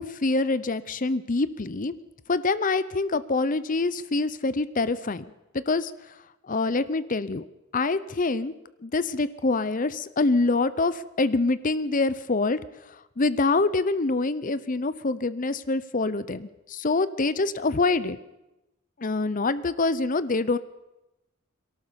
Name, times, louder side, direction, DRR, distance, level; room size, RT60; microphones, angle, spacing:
voice 1, 0.0-1.9 2.3-5.2 5.7-5.9 6.5-7.5 7.7-8.5 8.8-12.6 13.2-18.2 19.0-20.6, left 3 dB, 40° left, 16 dB, 0.7 m, -25 dB
22.5 x 18.0 x 6.9 m, 0.96 s
head